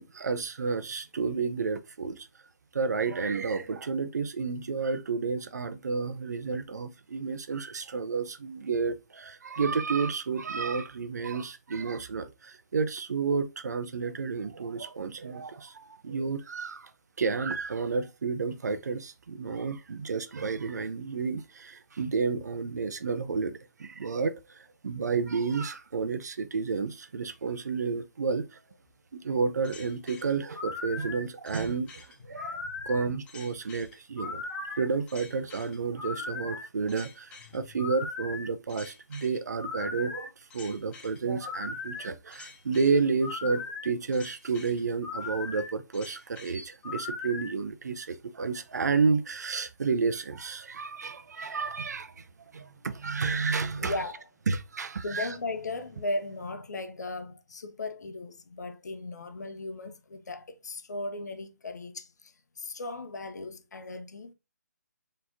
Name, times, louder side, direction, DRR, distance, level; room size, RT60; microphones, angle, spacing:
voice 1, 0.0-2.3 2.7-16.9 17.2-28.6 29.1-52.2 52.5-53.9 54.5-55.3, right 4 dB, 70° right, 0.6 m, -31 dB
sound 1, 29.6-47.5, left 4 dB, 10° left, 0.4 m, -39 dB
voice 2, 32.3-32.8 37.4-37.8 53.8-54.3 55.0-64.3, left 2 dB, 70° left, 0.8 m, -37 dB
4.1 x 3.2 x 2.7 m
figure-of-eight pair, 145°, 9 cm